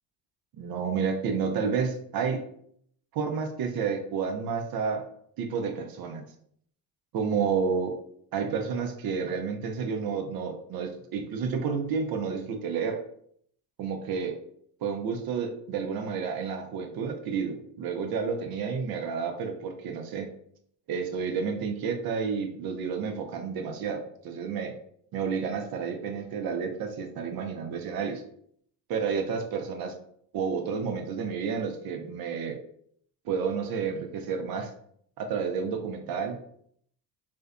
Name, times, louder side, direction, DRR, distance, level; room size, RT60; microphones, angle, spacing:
voice 1, 0.6-2.4 3.1-5.1 5.4-6.3 7.1-8.0 8.3-13.0 13.8-14.3 14.8-20.3 20.9-24.7 25.1-28.2 28.9-29.9 30.3-32.6 33.2-34.7 35.2-36.4, right 6 dB, 50° right, 5 dB, 0.5 m, -30 dB
2.5 x 2.1 x 2.4 m, 0.66 s
hypercardioid pair, 65°, 49 cm